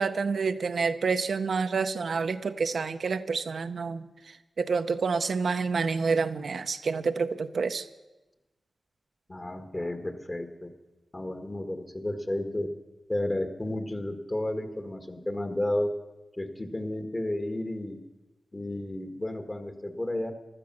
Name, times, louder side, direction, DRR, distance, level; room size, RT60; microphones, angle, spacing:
voice 1, 0.0-4.1 4.6-7.9, right 5 dB, 75° right, 9 dB, 0.6 m, -28 dB
voice 2, 9.3-10.7 11.1-12.7 13.1-15.9 16.4-18.0 18.5-20.3, left 1 dB, 30° left, 8 dB, 1.8 m, -32 dB
15.5 x 12.0 x 6.2 m, 1.1 s
cardioid pair, 55°, 0 cm